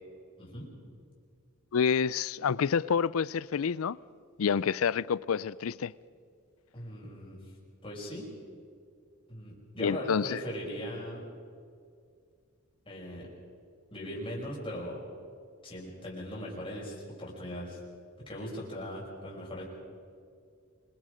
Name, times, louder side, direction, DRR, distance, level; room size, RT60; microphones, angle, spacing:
voice 1, 0.4-0.7 6.7-7.4 7.8-8.3 9.3-11.2 12.8-13.3 13.9-15.0 15.6-17.8 18.3-19.6, equal, 25° left, 6.2 m, -39 dB
voice 2, 1.7-4.0 4.4-5.9 9.8-10.4, left 6 dB, 85° left, 0.4 m, -28 dB
27.0 x 21.5 x 5.1 m
head